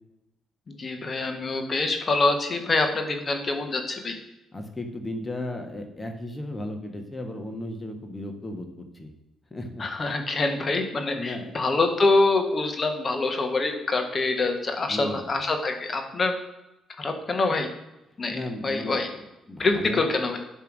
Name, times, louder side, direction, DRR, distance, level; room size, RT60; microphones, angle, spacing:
voice 1, 0.7-4.2 9.8-16.3 17.0-17.7 18.2-18.4 18.6-19.1 19.6-20.4, left 3 dB, 35° left, 5 dB, 1.5 m, -25 dB
voice 2, 4.5-9.1 9.5-10.2 11.1-11.7 14.9-15.3 18.3-19.0 19.5-20.1, left 1 dB, 20° left, 4 dB, 1.5 m, -35 dB
11.0 x 3.6 x 6.1 m, 0.96 s
cardioid pair, 90°, 0 cm